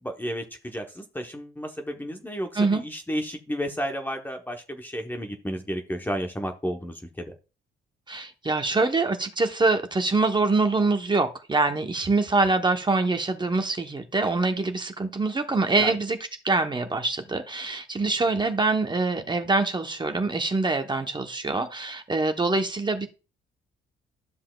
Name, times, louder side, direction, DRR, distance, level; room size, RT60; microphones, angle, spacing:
voice 1, 0.0-7.3 15.8-15.9, equal, 10° left, 3 dB, 0.9 m, -32 dB
voice 2, 8.1-16.2 16.4-23.1, right 3 dB, 20° right, 6 dB, 0.9 m, -24 dB
12.5 x 5.6 x 2.3 m, 0.32 s
cardioid pair, 90°, 20 cm